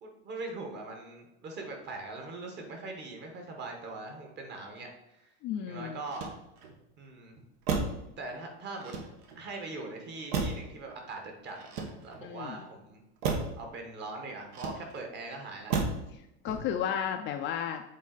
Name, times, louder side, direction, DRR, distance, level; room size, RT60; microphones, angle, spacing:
voice 1, 0.0-5.3 5.7-6.3 7.0-7.4 8.2-8.9 9.4-11.6 12.0-13.0 13.6-15.7, right 3 dB, 35° right, 2 dB, 1.4 m, -41 dB
voice 2, 5.4-6.0 12.2-12.6 16.4-17.8, left 8 dB, 40° left, 6 dB, 0.4 m, -33 dB
Motor vehicle (road), 6.0-6.8 7.6-8.1 8.8-9.5 10.3-10.8 11.6-12.3 13.2-13.6 14.5-15.1 15.7-16.1 16.4-16.9, right 4 dB, 70° right, 1.3 m, -33 dB
7.4 x 4.1 x 4.0 m, 0.85 s
cardioid pair, 155°, 31 cm